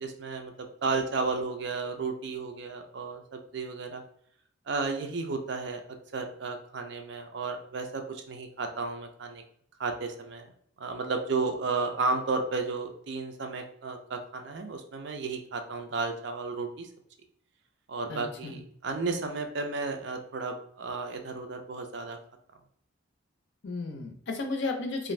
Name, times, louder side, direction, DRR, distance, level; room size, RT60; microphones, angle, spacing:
voice 1, 0.0-4.0 4.7-5.8 6.1-9.4 9.8-10.5 10.8-16.9 17.9-22.2, right 4 dB, 60° right, 5 dB, 0.4 m, -33 dB
voice 2, 18.1-18.6 23.6-25.1, left 3 dB, 60° left, 5 dB, 0.5 m, -34 dB
2.5 x 2.5 x 3.1 m, 0.65 s
head